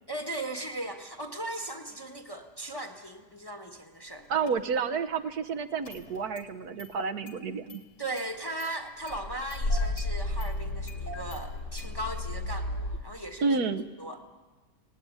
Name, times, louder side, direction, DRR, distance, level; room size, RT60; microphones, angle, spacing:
voice 1, 0.1-4.3 8.0-13.4 14.0-14.2, right 1 dB, 15° left, 4 dB, 1.2 m, -37 dB
voice 2, 4.3-7.8 13.4-13.9, right 5 dB, 65° right, 8 dB, 1.4 m, -30 dB
Engine starting, 4.5-4.6 5.8-6.5 6.8-6.9 7.3-7.4 7.7-7.8 8.2-8.7 9.0-13.0, left 2 dB, 70° left, 3.7 m, -33 dB
20.0 x 18.0 x 9.5 m, 1.3 s
omnidirectional pair, 1.8 m